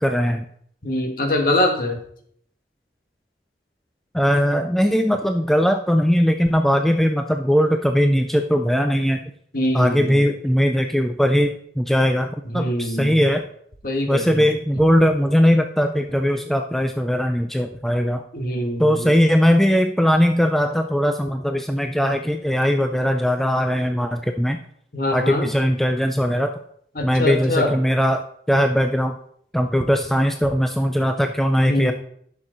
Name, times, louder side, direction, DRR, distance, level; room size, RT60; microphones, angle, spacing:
voice 1, 0.0-0.4 4.1-9.3 9.7-13.4 14.1-18.2 18.8-24.6 25.1-26.5 27.0-28.2 28.5-29.1 29.5-31.9, equal, ahead, 5 dB, 0.4 m, -19 dB
voice 2, 0.8-2.0 9.5-10.2 12.4-13.3 13.8-14.5 18.3-19.1 24.9-25.5 26.9-27.7 31.6-31.9, left 1 dB, 50° left, 3 dB, 1.6 m, -23 dB
11.0 x 6.2 x 3.9 m, 0.65 s
head